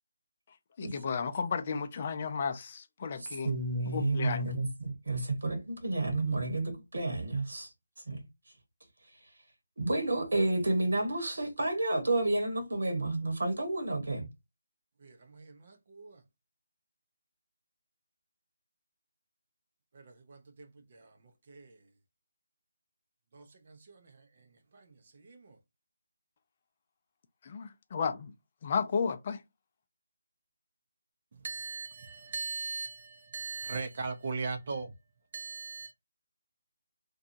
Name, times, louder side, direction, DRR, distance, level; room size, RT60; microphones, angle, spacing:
voice 1, 0.8-3.5 3.8-4.6 27.4-28.3 28.6-29.4, left 5 dB, 35° left, 0.5 m, -33 dB
voice 2, 3.4-7.7 8.1-8.2 9.8-14.3, right 2 dB, 75° right, 1.1 m, -30 dB
voice 3, 15.0-16.2 19.9-21.1 21.5-21.8 23.3-24.1 24.7-25.6 31.4-34.9 35.3-35.9, right 4 dB, 45° right, 0.5 m, -40 dB
2.7 x 2.2 x 2.5 m
figure-of-eight pair, 160°, 0 cm